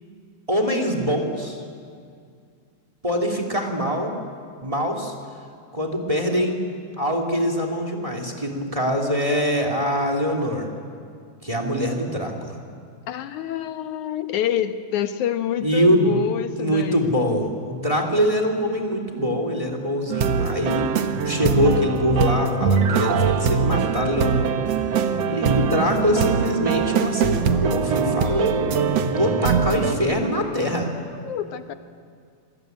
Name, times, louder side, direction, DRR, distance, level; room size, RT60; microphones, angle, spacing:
voice 1, 0.5-1.6 3.0-4.1 4.6-5.1 5.7-6.6 7.0-10.7 11.4-12.6 15.6-16.2 16.5-20.9 21.2-24.5 24.9-30.9, equal, 10° right, 4 dB, 2.8 m, -23 dB
voice 2, 13.1-17.1 31.1-31.7, left 10 dB, 85° left, 9 dB, 2.7 m, -27 dB
sound 1, 20.1-30.0, right 6 dB, 60° right, 2.2 m, -22 dB
27.5 x 23.0 x 9.5 m, 2.2 s
omnidirectional pair, 3.3 m